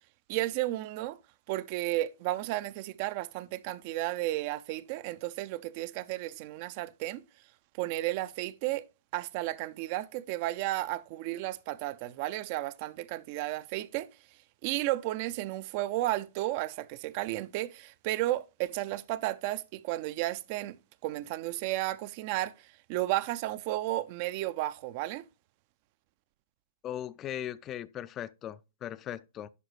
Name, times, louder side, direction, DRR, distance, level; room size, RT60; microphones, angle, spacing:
voice 1, 0.3-1.2 1.5-7.2 7.8-8.8 9.1-14.1 14.6-20.8 21.0-25.2, right 16 dB, 45° right, 0.4 m, -33 dB
voice 2, 26.8-29.5, left 11 dB, 25° left, 0.4 m, -38 dB
11.0 x 3.9 x 3.1 m
figure-of-eight pair, 105°, 0 cm